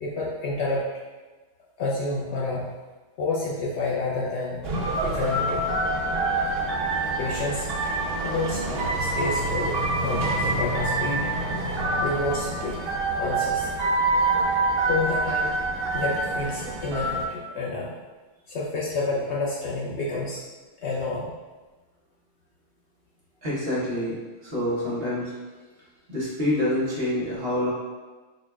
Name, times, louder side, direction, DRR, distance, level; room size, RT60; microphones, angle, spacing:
voice 1, 0.0-0.9 1.8-2.8 3.2-4.7 5.0-5.8 7.0-7.7 8.2-9.7 10.0-11.3 12.0-12.8 13.2-13.7 14.9-15.6 15.9-17.9 18.5-20.4 20.8-21.3, left 3 dB, 75° left, -4 dB, 0.6 m, -29 dB
sound 1, 4.6-17.3, right 2 dB, 80° right, 0.5 m, -26 dB
voice 2, 23.4-24.2 24.4-25.3 26.1-27.7, left 1 dB, 45° right, -6 dB, 0.9 m, -26 dB
4.0 x 2.2 x 3.3 m, 1.3 s
omnidirectional pair, 1.7 m